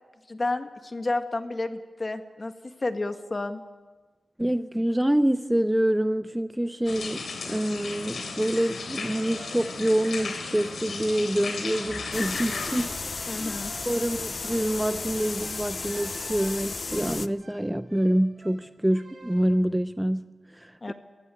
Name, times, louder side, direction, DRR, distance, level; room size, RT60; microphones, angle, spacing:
voice 1, 0.3-2.5 2.8-3.6 13.3-13.7 20.8-20.9, left 2 dB, 35° left, 7 dB, 1.8 m, -30 dB
voice 2, 4.4-13.6 13.9-20.9, right 1 dB, 10° right, 12 dB, 0.6 m, -26 dB
sound 1, 6.9-12.9, left 4 dB, 85° left, 3.5 m, -35 dB
sound 2, 9.0-19.7, right 2 dB, 60° right, 3.7 m, -47 dB
sound 3, 12.1-17.3, left 4 dB, 55° left, 0.7 m, -34 dB
22.5 x 15.5 x 9.9 m, 1.4 s
wide cardioid pair, 75°, 0 cm